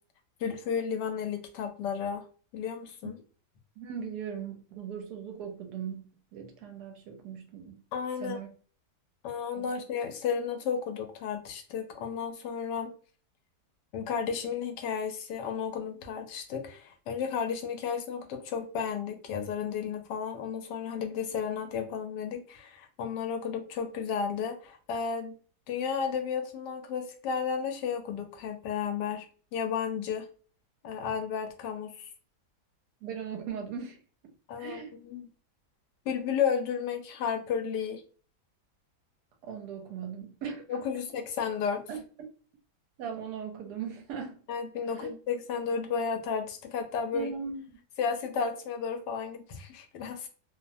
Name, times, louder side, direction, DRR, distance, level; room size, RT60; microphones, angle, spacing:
voice 1, 0.4-2.2 2.5-3.2 7.9-8.4 9.2-12.9 13.9-25.3 25.7-29.2 29.5-30.3 30.8-32.1 34.5-35.3 36.1-38.0 40.7-41.8 44.5-47.3 48.0-50.3, left 6 dB, 90° left, 1.2 m, -33 dB
voice 2, 3.8-7.8 8.2-8.5 9.5-9.7 33.0-34.3 34.6-34.9 39.4-40.8 41.9-42.3 43.0-44.4 44.9-45.1 47.1-47.8, right 7 dB, 75° right, 1.1 m, -39 dB
2.9 x 2.0 x 2.6 m
omnidirectional pair, 1.8 m